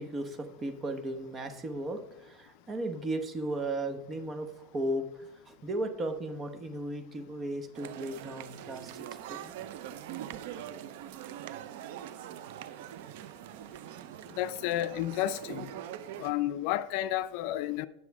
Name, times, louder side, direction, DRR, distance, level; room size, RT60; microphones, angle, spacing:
voice 1, 0.0-5.1 5.5-9.5, right 1 dB, 20° right, 1.0 m, -36 dB
sound 1, 7.7-16.3, right 11 dB, 75° right, 0.6 m, -43 dB
voice 2, 14.4-15.7 16.2-17.9, left 13 dB, 60° left, 0.4 m, -31 dB
9.2 x 6.8 x 4.7 m
supercardioid pair, 150°, 0 cm